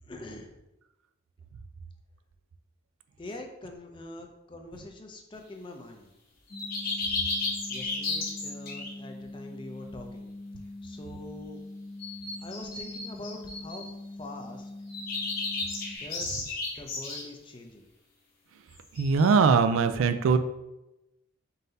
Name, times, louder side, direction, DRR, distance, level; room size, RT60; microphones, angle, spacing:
voice 1, 0.0-0.6 3.2-6.1 7.7-10.3 10.8-11.6 12.4-14.7 16.0-17.9, left 1 dB, 25° left, 4 dB, 0.4 m, -44 dB
sound 1, 6.5-16.0, left 2 dB, 80° left, 1.0 m, -43 dB
sound 2, 6.5-8.9 12.0-13.9 14.9-17.2 18.9-19.3, left 3 dB, 50° left, 0.9 m, -33 dB
voice 2, 19.0-20.4, right 5 dB, 85° right, 9 dB, 0.3 m, -21 dB
4.0 x 2.6 x 3.8 m, 0.95 s
head